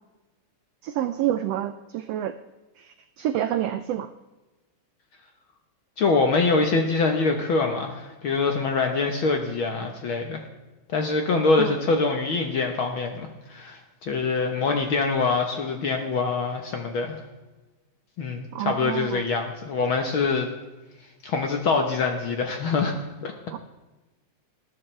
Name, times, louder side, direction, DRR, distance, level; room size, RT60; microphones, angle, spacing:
voice 1, 0.8-2.3 2.8-4.1 11.6-11.8 18.5-19.2 23.5-23.6, right 12 dB, 85° right, 10 dB, 1.4 m, -28 dB
voice 2, 6.0-10.4 10.9-17.2 18.2-20.5 21.2-22.9 23.2-23.3, left 4 dB, 60° left, 4 dB, 1.4 m, -24 dB
19.5 x 10.5 x 3.3 m, 1.1 s
omnidirectional pair, 3.4 m